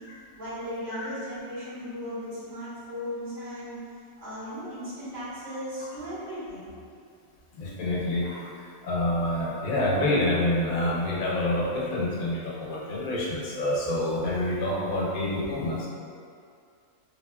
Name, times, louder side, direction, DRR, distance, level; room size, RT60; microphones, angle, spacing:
voice 1, 0.4-3.8 4.2-6.7, equal, 65° right, -12 dB, 1.4 m, -36 dB
voice 2, 7.5-8.5 8.8-15.9, left 1 dB, 90° left, -4 dB, 1.1 m, -27 dB
3.3 x 2.3 x 2.2 m, 2.4 s
omnidirectional pair, 1.4 m